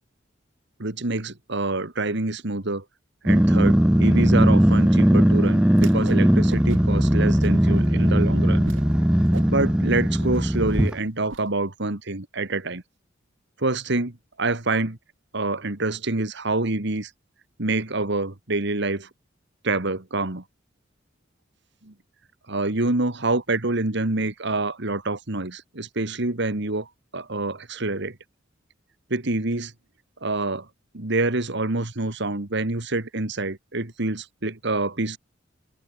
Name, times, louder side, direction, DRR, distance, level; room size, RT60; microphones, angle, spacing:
voice 1, 0.8-2.8 3.2-8.7 9.5-12.8 13.6-15.0 15.3-17.1 17.6-19.1 19.6-20.4 21.8-21.9 22.5-26.9 27.1-28.2 29.1-29.7 30.2-30.7 30.9-35.2, right 2 dB, 65° right, 2.2 m, -26 dB
Growling, 3.3-10.9, equal, 5° right, 0.4 m, -19 dB
Whoosh swoosh swish, 5.7-6.2 6.5-7.0 7.4-7.9 8.3-8.4 8.6-8.8 9.2-11.4, right 2 dB, 85° right, 1.8 m, -39 dB
open air
head